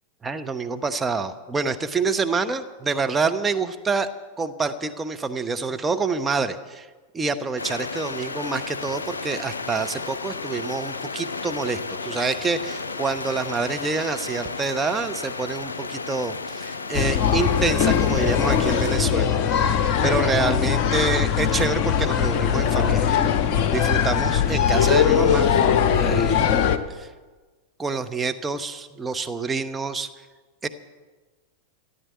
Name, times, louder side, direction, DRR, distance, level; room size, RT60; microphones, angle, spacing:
voice 1, 0.2-4.1 4.4-6.9 7.1-19.4 19.8-23.2 23.7-25.6 25.9-26.5 26.9-27.1 27.8-30.1 30.6-30.7, right 4 dB, 15° right, 7 dB, 1.0 m, -27 dB
sound 1, 7.6-19.0, left 4 dB, 75° left, 0.9 m, -33 dB
sound 2, 16.9-26.8, left 8 dB, 40° left, 1.1 m, -20 dB
14.5 x 10.5 x 8.7 m, 1.3 s
figure-of-eight pair, 90°, 0 cm